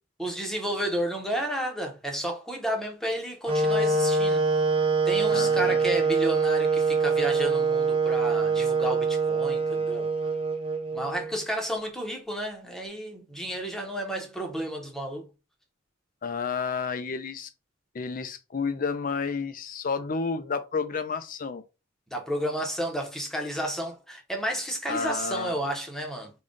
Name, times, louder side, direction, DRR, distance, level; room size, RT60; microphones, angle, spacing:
voice 1, 0.2-4.4 4.8-10.1 10.9-15.3 22.1-26.3, equal, ahead, 0.8 m, -32 dB
Wind instrument woodwind instrument, 3.5-11.4, right 4 dB, 25° right, 0.6 m, -24 dB
voice 2, 5.3-5.8 16.2-17.5 17.9-21.6 24.9-25.5, left 5 dB, 40° left, 0.4 m, -31 dB
3.7 x 2.3 x 3.7 m
head